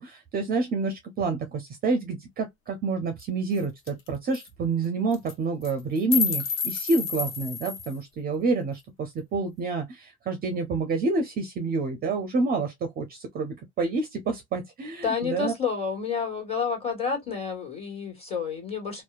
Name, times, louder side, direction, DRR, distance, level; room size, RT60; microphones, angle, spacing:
voice 1, 0.0-15.5, right 3 dB, 25° right, 0.5 m, -28 dB
sound 1, 3.2-3.3 3.6-3.7 3.9-4.1 4.3-4.5 5.1-5.3 5.6-8.0, left 6 dB, 40° left, 0.7 m, -29 dB
voice 2, 15.0-19.0, left 6 dB, 15° left, 1.5 m, -29 dB
2.7 x 2.1 x 2.3 m
hypercardioid pair, 100°, 34 cm